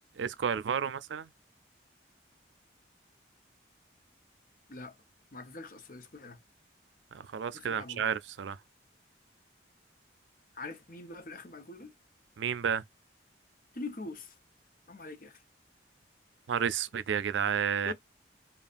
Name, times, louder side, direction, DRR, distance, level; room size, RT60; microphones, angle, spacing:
voice 1, 0.2-1.3 7.1-8.6 12.4-12.8 16.5-17.9, right 7 dB, 80° right, 0.4 m, -31 dB
voice 2, 5.3-6.4 7.5-8.1 10.5-11.9 13.7-14.4 14.9-15.4 17.8-17.9, left 3 dB, 45° left, 0.9 m, -43 dB
5.3 x 2.4 x 2.5 m
head